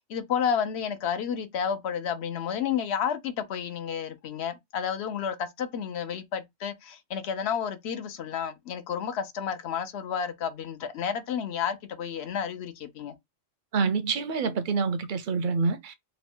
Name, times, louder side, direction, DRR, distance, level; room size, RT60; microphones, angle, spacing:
voice 1, 0.1-13.1, left 7 dB, 65° left, 0.9 m, -31 dB
voice 2, 13.7-15.9, right 5 dB, 55° right, 0.6 m, -27 dB
3.1 x 2.2 x 4.3 m
omnidirectional pair, 1.2 m